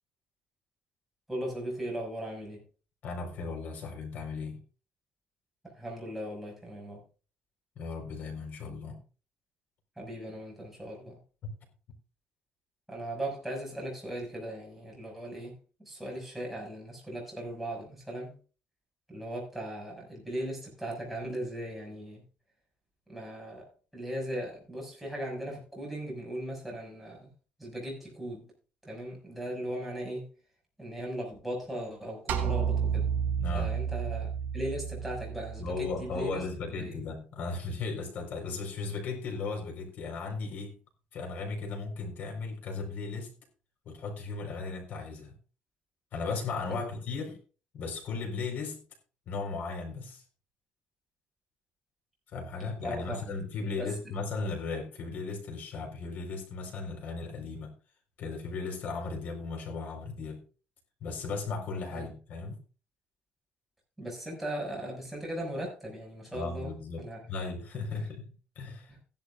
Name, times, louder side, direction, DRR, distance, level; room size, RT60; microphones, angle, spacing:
voice 1, 1.3-2.6 5.6-7.0 10.0-11.2 12.9-18.3 19.1-22.2 23.1-27.3 27.6-28.5 28.8-30.3 30.8-33.1 33.5-36.4 36.8-37.0 46.7-46.9 52.8-53.2 53.8-54.2 61.9-62.1 64.0-67.2 68.9-69.0, right 1 dB, 5° right, 6.2 m, -38 dB
voice 2, 3.0-4.6 7.8-9.0 33.4-33.7 35.6-40.7 41.1-43.3 43.9-45.3 46.1-47.4 47.7-48.8 49.3-50.2 52.3-57.7 58.2-60.4 61.0-62.6 66.3-68.9, left 4 dB, 60° left, 4.4 m, -36 dB
sound 1, 32.3-36.7, right 7 dB, 80° right, 2.5 m, -32 dB
16.0 x 11.5 x 2.5 m
cardioid pair, 135°, 3 cm